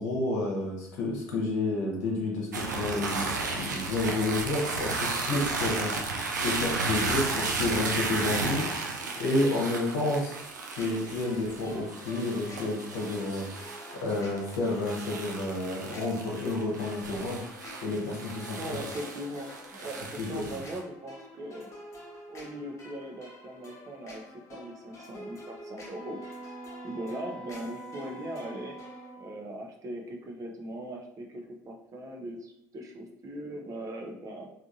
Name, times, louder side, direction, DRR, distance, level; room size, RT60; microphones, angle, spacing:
voice 1, 0.0-5.9 6.4-8.6 9.2-10.3 10.8-13.5 14.0-17.5 17.8-18.6 20.2-20.4, left 2 dB, 70° left, -2 dB, 0.9 m, -30 dB
sound 1, 2.5-20.8, right 3 dB, 85° right, 0.4 m, -34 dB
sound 2, 10.8-29.1, left 1 dB, 35° left, 1.2 m, -49 dB
voice 2, 18.6-21.7 22.3-26.2 26.8-28.8 29.2-34.5, right 1 dB, 35° right, 2 dB, 0.6 m, -40 dB
Wind instrument woodwind instrument, 25.9-29.4, right 2 dB, 15° left, 1.2 m, -44 dB
3.5 x 2.5 x 2.5 m, 0.74 s
figure-of-eight pair, 55°, 9 cm